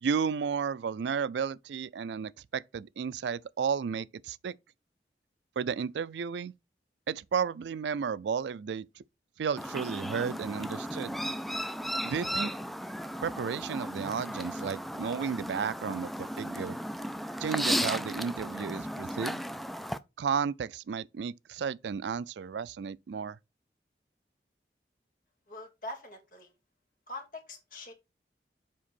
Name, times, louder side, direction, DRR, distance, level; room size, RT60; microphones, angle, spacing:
voice 1, 0.0-4.6 5.6-6.5 7.1-9.0 9.4-11.2 12.0-12.5 13.2-16.8 17.4-19.4 20.2-23.4, right 6 dB, 80° right, 0.4 m, -33 dB
Chirp tweet, 9.6-20.0, equal, ahead, 0.3 m, -35 dB
voice 2, 25.5-26.5 27.1-27.9, left 2 dB, 50° left, 2.6 m, -43 dB
7.5 x 5.2 x 4.2 m
head